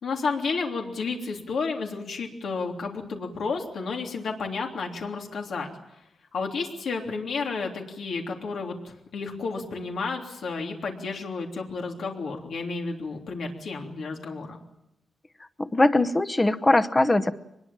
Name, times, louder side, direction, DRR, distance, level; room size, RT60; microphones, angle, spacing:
voice 1, 0.0-5.7 6.3-14.6, left 4 dB, 80° left, 1 dB, 3.3 m, -31 dB
voice 2, 15.6-17.3, left 2 dB, 15° left, 13 dB, 0.9 m, -21 dB
24.0 x 21.0 x 7.4 m, 0.83 s
wide cardioid pair, 150°, 0 cm